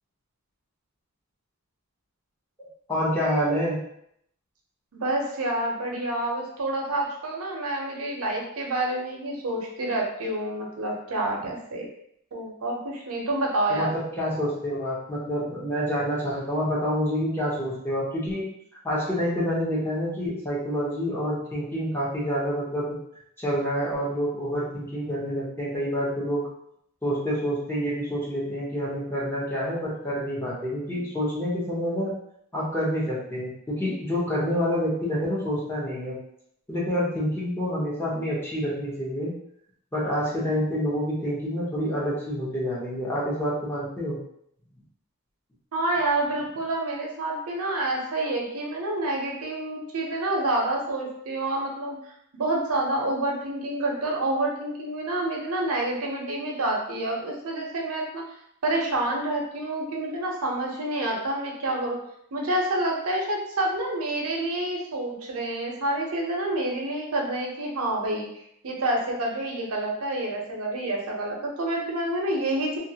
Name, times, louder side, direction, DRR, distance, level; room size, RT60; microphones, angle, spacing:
voice 1, 2.9-3.8 13.7-18.4 18.8-23.0 23.4-26.4 27.0-32.1 32.5-36.2 36.7-39.3 39.9-44.2, equal, 10° left, -8 dB, 0.9 m, -27 dB
voice 2, 4.9-11.9 12.3-13.9 45.7-52.0 52.3-58.2 58.6-62.0 62.3-68.3 68.6-72.8, right 1 dB, 90° right, -1 dB, 0.7 m, -28 dB
2.5 x 2.4 x 2.8 m, 0.71 s
head